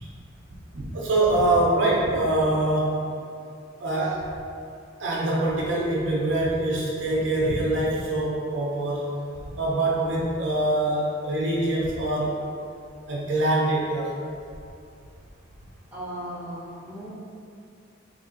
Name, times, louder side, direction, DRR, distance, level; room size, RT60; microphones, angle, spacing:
voice 1, 0.7-3.0 3.8-4.3 5.0-9.1 9.6-12.4 13.1-14.1, right 1 dB, 60° right, -5 dB, 0.6 m, -24 dB
voice 2, 15.9-17.1, equal, 10° right, -9 dB, 0.8 m, -36 dB
3.7 x 2.8 x 2.7 m, 2.4 s
head